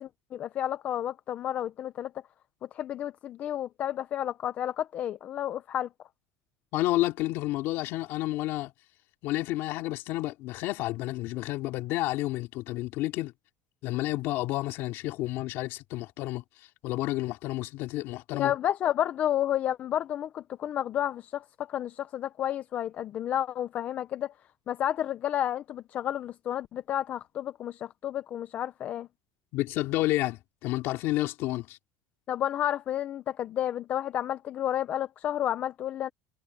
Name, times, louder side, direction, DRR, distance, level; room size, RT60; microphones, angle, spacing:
voice 1, 0.0-2.1 2.7-5.9 18.4-24.3 24.7-29.1 32.3-36.1, left 11 dB, 30° left, 0.5 m, -31 dB
voice 2, 6.7-8.7 9.2-13.3 13.8-16.4 16.8-18.5 29.5-31.8, left 17 dB, 50° left, 2.7 m, -30 dB
cardioid pair, 170°, 5 cm